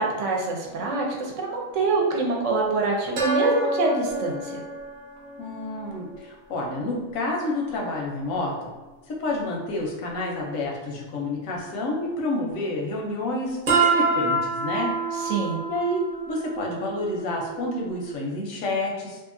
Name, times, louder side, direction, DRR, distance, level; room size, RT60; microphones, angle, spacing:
voice 1, 0.0-4.5 15.2-15.6, right 3 dB, 75° right, -1 dB, 0.9 m, -25 dB
sound 1, 0.7-0.8 3.2-6.3 6.8-6.9 13.7-18.1, right 3 dB, 50° right, 0.7 m, -27 dB
voice 2, 5.4-8.7 9.1-14.9 15.7-19.2, left 2 dB, 85° left, -1 dB, 1.1 m, -29 dB
2.8 x 2.5 x 2.5 m, 1.2 s
omnidirectional pair, 1.3 m